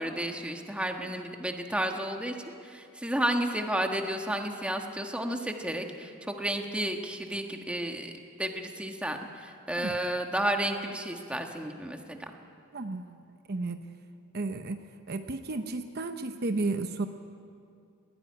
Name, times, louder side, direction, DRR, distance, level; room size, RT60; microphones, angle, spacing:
voice 1, 0.0-2.3 2.6-8.1 8.4-12.3, right 1 dB, 5° right, 3 dB, 1.4 m, -32 dB
voice 2, 12.7-13.2 13.5-13.8 14.3-17.1, right 3 dB, 50° right, 7 dB, 0.8 m, -33 dB
20.0 x 16.0 x 9.6 m, 2.4 s
head